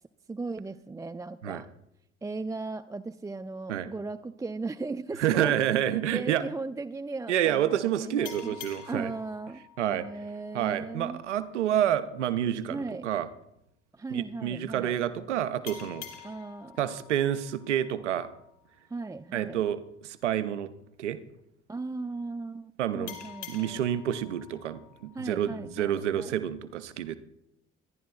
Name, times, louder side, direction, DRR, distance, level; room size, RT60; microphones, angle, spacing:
voice 1, 0.3-1.7 2.2-5.5 6.0-8.6 8.9-11.2 12.7-13.1 13.9-15.0 16.2-16.8 18.9-19.6 21.7-23.8 25.1-26.3, right 3 dB, 10° right, 9 dB, 0.4 m, -37 dB
voice 2, 5.2-6.4 7.3-9.1 9.8-10.1 10.5-13.3 14.1-16.1 16.8-18.3 19.3-20.7 21.0-21.2 22.8-23.2 23.5-27.2, right 10 dB, 80° right, 13 dB, 0.7 m, -28 dB
sound 1, 8.2-11.5 15.7-18.9 23.1-26.0, left 9 dB, 80° left, 1.8 m, -48 dB
25.0 x 11.0 x 2.3 m, 0.81 s
figure-of-eight pair, 55°, 35 cm